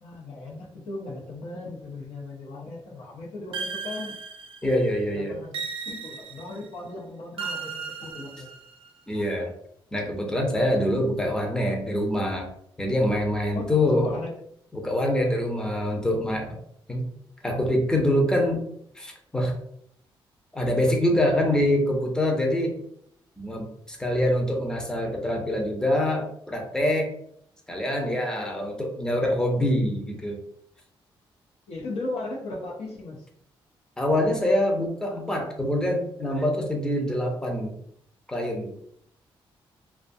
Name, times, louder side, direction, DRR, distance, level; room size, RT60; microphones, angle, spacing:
voice 1, 0.0-4.2 5.1-8.5 13.5-14.3 31.7-33.3, left 2 dB, 85° left, -3 dB, 0.7 m, -37 dB
sound 1, 3.5-4.9 5.5-6.7 7.4-8.9, right 5 dB, 65° right, 0.5 m, -36 dB
voice 2, 4.6-5.4 7.4-7.5 9.1-9.5 9.9-12.5 12.8-14.1 14.7-16.6 16.9-17.1 17.4-18.6 19.0-19.5 20.5-22.7 23.4-27.1 27.7-30.4 34.0-37.7 38.3-38.7, left 1 dB, 5° left, 1 dB, 0.6 m, -25 dB
2.5 x 2.2 x 2.6 m, 0.68 s
cardioid pair, 70°, 10 cm